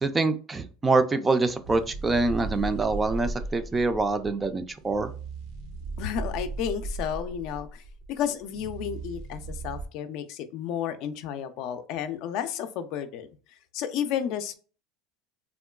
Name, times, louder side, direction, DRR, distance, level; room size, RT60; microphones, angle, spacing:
voice 1, 0.0-5.1, right 3 dB, 15° right, 9 dB, 0.3 m, -25 dB
sound 1, 1.6-9.9, right 3 dB, 75° right, 0.6 m, -37 dB
voice 2, 6.0-7.8 8.1-13.3 13.7-14.5, left 9 dB, 60° left, 9 dB, 0.4 m, -32 dB
3.6 x 2.2 x 2.3 m, 0.38 s
supercardioid pair, 120°, 0 cm